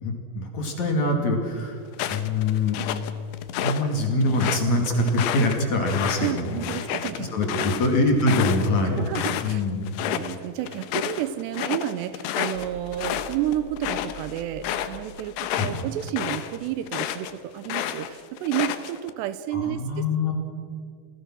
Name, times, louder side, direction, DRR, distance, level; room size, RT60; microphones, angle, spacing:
voice 1, 0.0-1.8 2.1-2.8 3.6-6.6 7.2-9.0 9.4-9.9 15.5-15.8 19.5-20.3, left 2 dB, 45° left, 2 dB, 3.3 m, -24 dB
sound 1, 1.9-3.8 4.2-9.5 9.9-10.4 10.7-17.3 17.6-19.1, left 11 dB, 75° left, 3.0 m, -30 dB
voice 2, 6.2-7.8 9.0-9.6 10.1-20.0, right 12 dB, 80° right, 13 dB, 2.8 m, -31 dB
sound 2, 12.5-16.7, right 3 dB, 20° right, 7.0 m, -46 dB
28.0 x 20.0 x 6.2 m, 2.1 s
omnidirectional pair, 5.1 m